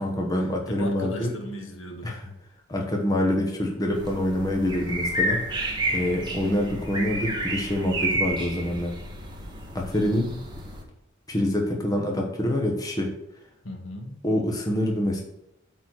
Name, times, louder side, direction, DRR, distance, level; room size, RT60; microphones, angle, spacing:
voice 1, 0.0-1.4 2.0-2.3 2.7-5.4 5.9-8.9 9.7-10.4 11.3-13.1 14.2-15.2, left 1 dB, 15° left, 1 dB, 1.1 m, -26 dB
voice 2, 0.7-2.1 13.6-14.2, left 1 dB, 65° left, 3 dB, 1.5 m, -36 dB
sound 1, 3.9-10.8, right 1 dB, 20° right, 1.3 m, -30 dB
8.3 x 4.2 x 6.3 m, 0.84 s
head